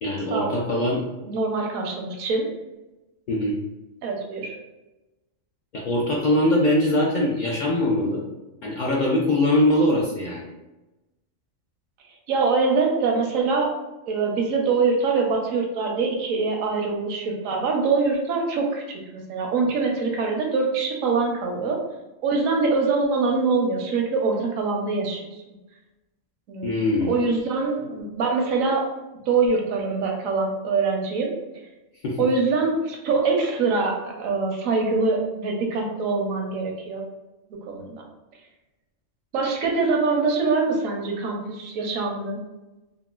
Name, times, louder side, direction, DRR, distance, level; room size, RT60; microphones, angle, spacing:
voice 1, 0.0-1.0 3.3-3.5 5.7-8.2 8.6-10.5 26.6-27.4 32.0-32.2, left 1 dB, 65° left, -4 dB, 0.4 m, -22 dB
voice 2, 1.2-2.4 4.0-4.5 12.3-13.7 14.1-21.8 22.2-25.2 26.5-26.7 27.0-28.9 29.3-31.3 32.2-37.0 37.7-38.0 39.3-42.4, right 4 dB, 80° right, 0 dB, 1.1 m, -24 dB
3.7 x 2.2 x 2.3 m, 1.0 s
omnidirectional pair, 1.4 m